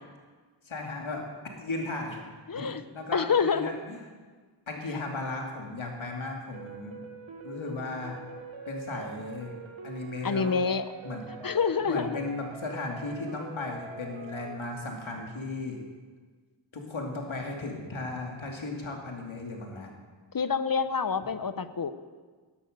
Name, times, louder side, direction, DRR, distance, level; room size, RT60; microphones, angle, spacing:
voice 1, 0.6-1.2 1.5-2.2 2.5-2.7 2.9-4.0 4.7-7.0 7.4-8.2 8.7-9.5 9.8-10.6 11.0-11.6 11.8-15.8 16.7-19.9, left 2 dB, 80° left, 1 dB, 2.7 m, -36 dB
voice 2, 2.5-2.8 3.1-3.7 10.2-10.9 11.4-12.2 20.3-21.9, left 5 dB, 45° left, 13 dB, 1.0 m, -27 dB
sound 1, 6.5-14.5, right 4 dB, 80° right, 1.9 m, -44 dB
17.0 x 12.0 x 6.7 m, 1.5 s
wide cardioid pair, 50°, 46 cm